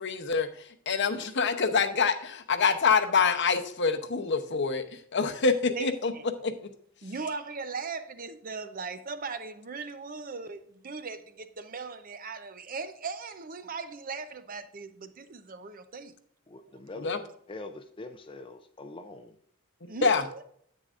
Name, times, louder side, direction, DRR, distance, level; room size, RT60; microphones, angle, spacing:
voice 1, 0.0-6.1 6.4-6.5 17.0-17.2 19.8-20.2, left 5 dB, 55° left, 0.8 m, -26 dB
voice 2, 5.7-6.2 7.0-16.1 17.1-17.2 19.9-20.4, right 4 dB, 40° right, 0.6 m, -38 dB
voice 3, 16.5-19.3, left 2 dB, 25° left, 0.5 m, -44 dB
9.9 x 8.6 x 2.5 m
head